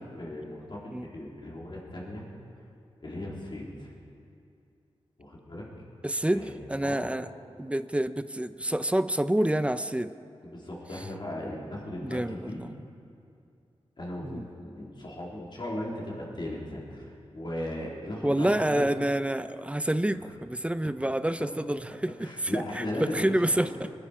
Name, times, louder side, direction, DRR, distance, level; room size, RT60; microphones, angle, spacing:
voice 1, 0.0-2.2 3.0-3.9 5.2-5.7 6.3-6.5 6.8-7.1 10.4-12.6 14.0-18.9 22.2-23.7, left 1 dB, 50° left, -3 dB, 3.7 m, -37 dB
voice 2, 6.0-7.3 7.6-10.1 11.0-11.1 12.0-12.7 14.2-14.4 18.2-23.9, right 1 dB, 10° right, 12 dB, 0.5 m, -28 dB
25.0 x 10.5 x 5.1 m, 2.5 s
wide cardioid pair, 80°, 11 cm